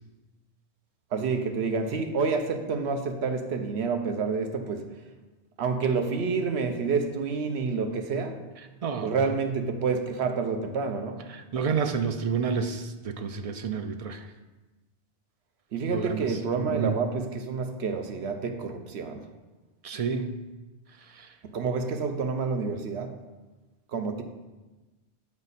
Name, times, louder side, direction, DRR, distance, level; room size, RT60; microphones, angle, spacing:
voice 1, 1.1-4.9 5.6-8.4 9.0-11.2 15.7-19.3 21.4-23.2 23.9-24.2, right 4 dB, 70° right, 6 dB, 1.0 m, -28 dB
voice 2, 8.8-9.1 11.3-14.2 15.9-16.2 16.7-16.9 19.8-20.4 21.2-21.3, right 6 dB, 55° right, 7 dB, 0.4 m, -29 dB
7.3 x 5.2 x 4.1 m, 1.2 s
omnidirectional pair, 1.1 m